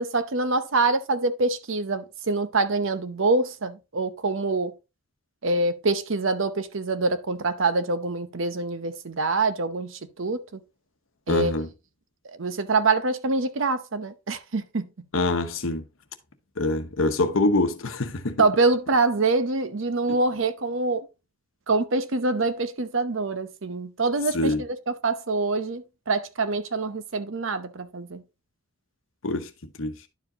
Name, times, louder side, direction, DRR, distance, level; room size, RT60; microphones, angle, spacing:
voice 1, 0.0-4.7 5.4-10.6 11.3-11.5 12.2-15.1 18.4-21.1 21.7-28.2, right 3 dB, 65° right, 0.8 m, -25 dB
voice 2, 11.3-11.7 15.1-15.8 16.6-18.4 24.3-24.6 29.2-29.5 29.8-29.9, left 2 dB, 70° left, 1.0 m, -24 dB
11.0 x 4.8 x 2.8 m
head